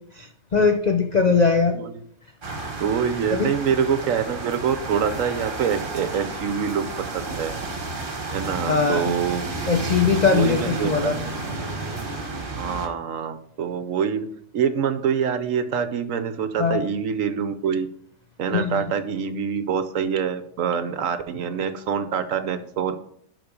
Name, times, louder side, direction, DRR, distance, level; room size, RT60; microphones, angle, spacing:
voice 1, 0.1-1.7 3.3-3.5 8.7-9.1 9.7-11.2 16.6-16.8 18.5-18.9, left 5 dB, 75° left, 5 dB, 0.3 m, -21 dB
sound 1, 2.4-12.9, right 2 dB, 35° right, 1.5 m, -31 dB
voice 2, 2.8-7.5 8.3-9.5 9.9-11.1 12.6-14.3 14.5-17.9 18.4-23.0, right 7 dB, 65° right, 10 dB, 1.1 m, -25 dB
11.5 x 4.0 x 5.2 m, 0.66 s
omnidirectional pair, 1.6 m